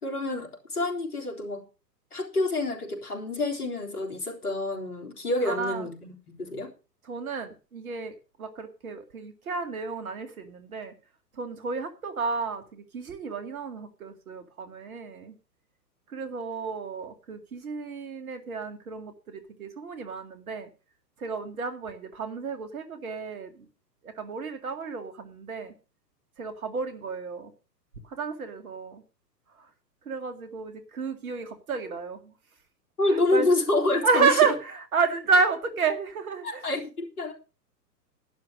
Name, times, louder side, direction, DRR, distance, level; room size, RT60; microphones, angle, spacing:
voice 1, 0.0-1.6 2.1-6.7 33.0-34.4 36.4-37.3, left 2 dB, 65° left, 2 dB, 3.9 m, -28 dB
voice 2, 5.4-5.9 7.0-10.9 11.3-15.3 16.1-20.7 21.2-23.7 24.0-25.7 26.4-27.5 28.1-29.0 30.1-32.3 33.1-33.5 34.0-36.6, right 5 dB, 55° right, 9 dB, 2.2 m, -31 dB
11.5 x 10.0 x 5.2 m, 0.33 s
figure-of-eight pair, 120°, 50 cm